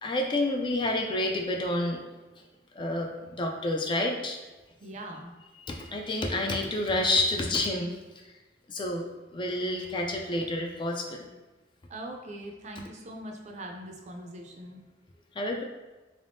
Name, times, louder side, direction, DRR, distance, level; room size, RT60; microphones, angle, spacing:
voice 1, 0.0-2.0 2.8-3.1 3.4-4.4 5.6-8.0 8.7-9.1 9.3-11.3 15.4-15.6, left 1 dB, 25° left, 2 dB, 0.3 m, -29 dB
voice 2, 4.8-5.3 11.9-14.8, right 1 dB, 40° right, 2 dB, 0.4 m, -41 dB
3.6 x 3.4 x 2.6 m, 1.2 s
head